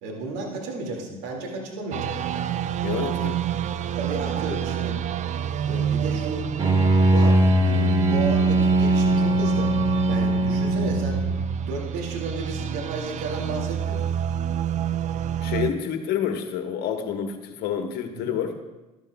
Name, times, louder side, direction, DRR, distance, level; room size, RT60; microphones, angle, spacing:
voice 1, 0.0-2.4 4.0-5.0 5.6-6.6 6.9-9.7 10.1-11.2 11.7-14.0 18.1-18.4, right 3 dB, 70° right, 0 dB, 2.2 m, -33 dB
sound 1, 1.9-15.7, right 9 dB, 40° right, 0.5 m, -28 dB
voice 2, 2.8-3.5 15.4-18.6, left 8 dB, 60° left, 5 dB, 1.3 m, -28 dB
Bowed string instrument, 6.6-11.5, right 1 dB, 25° right, 1.5 m, -20 dB
12.5 x 12.0 x 2.3 m, 1.1 s
hypercardioid pair, 80°, 18 cm